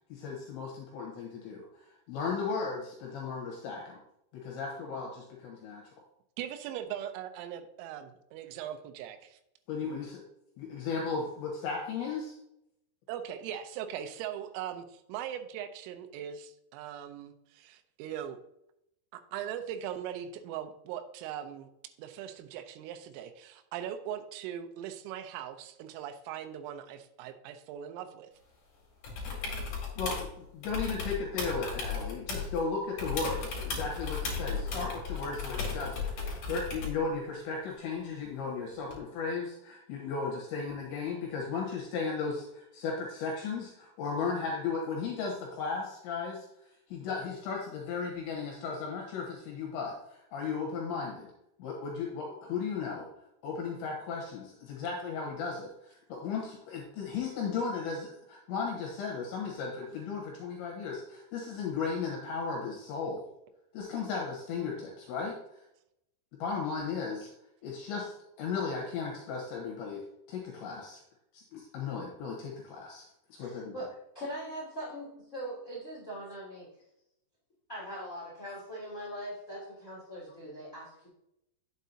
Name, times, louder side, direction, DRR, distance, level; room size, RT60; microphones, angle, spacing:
voice 1, 0.1-4.0 4.3-5.8 9.7-10.2 10.6-12.4 30.0-30.3 30.5-46.5 46.9-51.3 51.6-53.1 53.4-63.3 63.7-65.6 66.4-67.3 67.6-71.0 71.3-73.7, left 5 dB, 75° left, 0 dB, 3.1 m, -35 dB
voice 2, 6.4-9.4 13.1-18.4 19.1-21.7 22.0-28.3, right 10 dB, 85° right, 8 dB, 3.3 m, -40 dB
sound 1, 29.0-30.3 30.6-32.6 33.0-37.0 38.9-39.0, left 5 dB, 45° left, 2.8 m, -35 dB
voice 3, 73.4-73.9 74.1-76.7 77.7-81.1, equal, 20° left, -7 dB, 2.3 m, -41 dB
9.3 x 7.3 x 2.8 m, 0.80 s
omnidirectional pair, 5.9 m